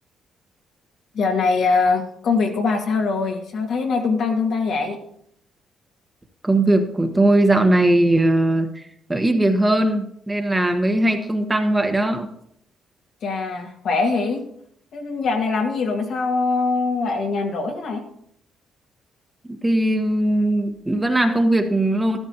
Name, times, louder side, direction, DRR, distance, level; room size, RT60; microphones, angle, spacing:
voice 1, 1.1-5.0 13.2-14.4 14.9-18.0, left 4 dB, 65° left, 1 dB, 2.0 m, -22 dB
voice 2, 6.4-8.8 9.1-12.3 19.6-22.2, right 1 dB, 15° right, 5 dB, 1.2 m, -19 dB
13.0 x 12.5 x 2.9 m, 0.71 s
cardioid pair, 90°, 0 cm